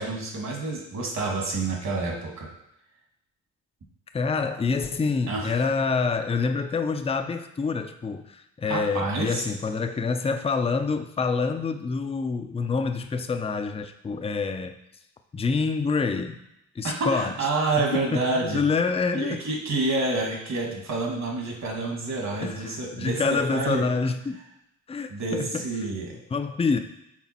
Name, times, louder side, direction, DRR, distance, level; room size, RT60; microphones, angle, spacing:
voice 1, 0.0-2.5 5.3-5.5 8.6-9.4 16.8-18.6 19.1-23.8 25.1-26.1, right 3 dB, 55° right, 0 dB, 1.9 m, -28 dB
voice 2, 4.1-14.8 15.3-16.4 16.8-17.3 18.1-19.4 22.4-24.4 24.9-25.6 26.3-26.8, left 4 dB, 20° left, 7 dB, 0.5 m, -27 dB
6.0 x 3.9 x 4.2 m, 0.84 s
cardioid pair, 80°, 33 cm